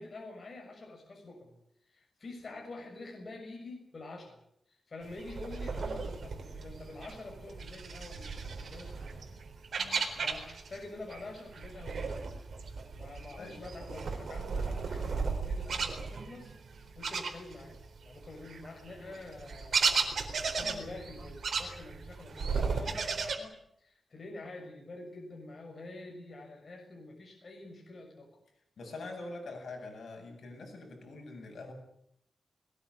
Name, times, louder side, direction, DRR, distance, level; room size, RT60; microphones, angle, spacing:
voice 1, 0.0-1.5 1.9-4.3 4.7-9.2 10.2-12.2 12.9-16.6 16.9-20.0 20.4-28.4, left 2 dB, 40° left, 1 dB, 6.8 m, -47 dB
sound 1, 5.1-10.8 11.1-17.9 18.2-23.4, right 5 dB, 60° right, 4.0 m, -35 dB
voice 2, 9.8-10.2 13.4-13.6 20.7-20.9 28.8-31.7, left 2 dB, 70° left, 3 dB, 7.9 m, -44 dB
21.5 x 19.0 x 9.8 m, 0.74 s
wide cardioid pair, 140°, 0 cm